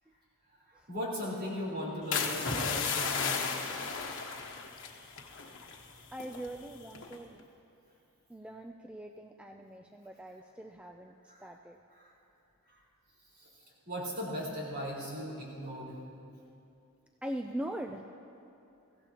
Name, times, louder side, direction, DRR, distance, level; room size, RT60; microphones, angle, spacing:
voice 1, 0.9-3.5 11.3-11.5 11.9-12.1 12.7-12.8 13.3-13.5 13.9-16.0, equal, 45° right, -6 dB, 4.2 m, -38 dB
sound 1, 2.1-5.9 6.1-6.5 7.0-7.3, left 5 dB, 60° left, 1.3 m, -34 dB
voice 2, 6.1-7.4 8.3-11.8 17.2-18.1, right 1 dB, 5° right, 3 dB, 0.4 m, -41 dB
23.0 x 15.5 x 2.9 m, 2.7 s
head